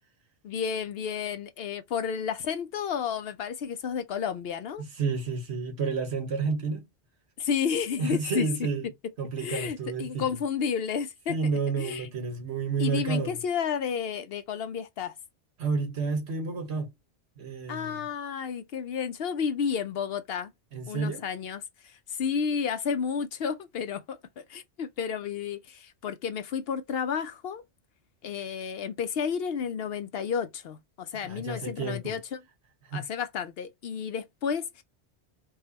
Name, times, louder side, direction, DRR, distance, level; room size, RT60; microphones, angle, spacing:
voice 1, 0.4-4.8 7.4-8.5 9.4-11.4 11.8-12.1 12.8-15.2 17.7-20.5 20.9-27.6 28.2-32.4 32.9-34.8, left 7 dB, 65° left, 0.7 m, -31 dB
voice 2, 4.9-6.9 8.0-8.9 9.2-10.3 11.3-13.4 15.6-16.9 17.4-18.0 20.7-21.2 31.2-32.2 32.9-33.0, right 4 dB, 70° right, 1.5 m, -30 dB
4.8 x 2.3 x 2.8 m
omnidirectional pair, 1.1 m